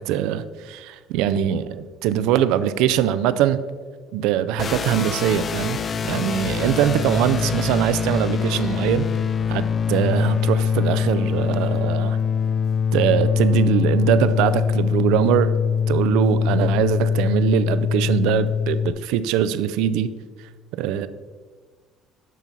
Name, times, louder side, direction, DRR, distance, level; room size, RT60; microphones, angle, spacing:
voice 1, 0.0-3.6 4.1-5.8 6.0-9.1 9.5-9.6 9.9-12.2 12.9-15.5 15.9-20.1 20.7-21.1, right 10 dB, 85° right, 13 dB, 0.3 m, -22 dB
sound 1, 4.6-18.9, left 7 dB, 35° left, 0.3 m, -23 dB
7.4 x 5.6 x 4.0 m, 1.5 s
cardioid pair, 105°, 0 cm